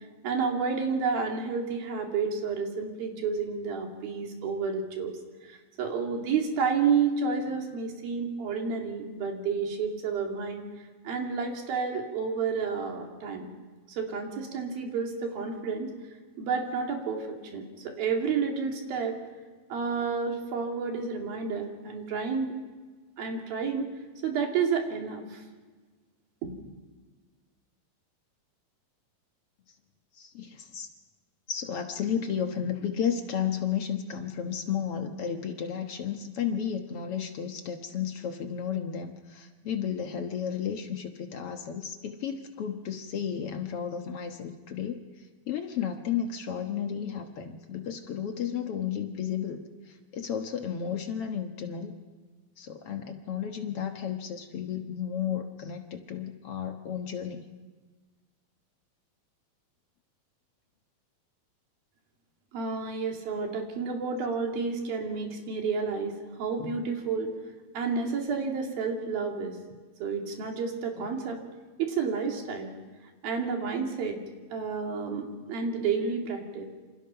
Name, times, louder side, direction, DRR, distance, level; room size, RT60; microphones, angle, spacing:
voice 1, 0.2-5.2 5.5-10.6 11.0-13.5 13.9-15.9 16.4-17.3 17.5-19.2 19.7-22.6 23.2-23.9 24.2-25.4 26.4-26.5 62.5-67.3 67.7-69.6 70.0-71.4 71.8-72.7 73.2-74.2 74.5-76.7, right 5 dB, 80° right, 2 dB, 4.5 m, -30 dB
voice 2, 30.2-30.9 31.5-45.0 45.5-51.9 52.6-57.4 66.6-66.8, left 8 dB, 60° left, 5 dB, 1.7 m, -33 dB
27.5 x 26.5 x 5.8 m, 1.4 s
omnidirectional pair, 4.1 m